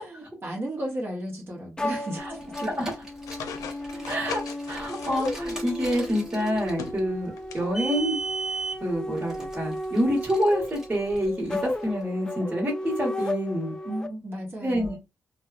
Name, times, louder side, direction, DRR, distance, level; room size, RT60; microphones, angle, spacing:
voice 1, 0.0-2.7 3.9-4.1 13.8-15.0, right 1 dB, 45° right, 1.0 m, -34 dB
sound 1, 1.8-14.1, left 1 dB, 15° left, 0.3 m, -34 dB
Car, 2.3-11.8, right 3 dB, 10° right, 0.9 m, -38 dB
sound 2, 3.3-6.1 6.5-7.7 7.9-8.0 9.2-9.3, left 7 dB, 90° left, 0.4 m, -40 dB
voice 2, 4.1-4.4 4.7-8.1 8.8-13.7 14.6-15.0, equal, 25° right, 1.3 m, -27 dB
2.6 x 2.3 x 2.4 m
cardioid pair, 100°, 6 cm